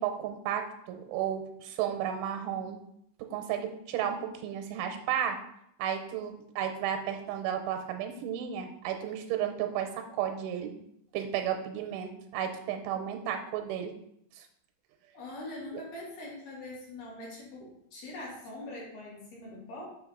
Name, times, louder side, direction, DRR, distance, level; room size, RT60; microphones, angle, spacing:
voice 1, 0.0-2.8 3.3-5.4 5.8-10.7 11.1-13.9 14.4-14.5, right 9 dB, 85° right, 6 dB, 3.1 m, -33 dB
voice 2, 15.1-19.9, left 2 dB, 55° left, -5 dB, 3.6 m, -43 dB
7.6 x 6.0 x 3.9 m, 0.74 s
omnidirectional pair, 5.6 m